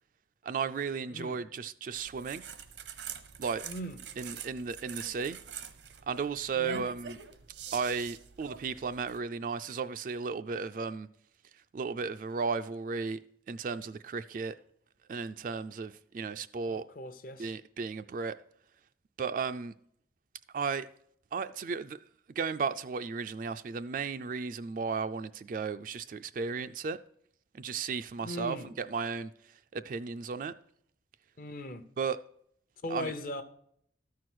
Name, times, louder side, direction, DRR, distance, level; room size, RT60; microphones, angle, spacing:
voice 1, 0.4-2.4 3.4-3.6 4.2-5.4 6.1-7.2 7.7-11.1 11.7-13.2 13.5-14.6 15.1-16.8 17.4-18.4 19.2-19.7 20.5-20.9 21.3-22.0 22.4-27.0 27.5-29.3 29.7-30.5 32.0-32.2 32.9-33.1, right 5 dB, 45° right, 0.3 m, -34 dB
voice 2, 1.1-1.4 3.6-4.0 6.5-6.9 16.6-17.6 28.2-28.7 31.4-31.8 32.8-33.4, left 1 dB, 50° left, 0.7 m, -39 dB
sound 1, 1.9-9.2, right 7 dB, 85° right, 0.8 m, -45 dB
13.0 x 4.7 x 6.0 m
head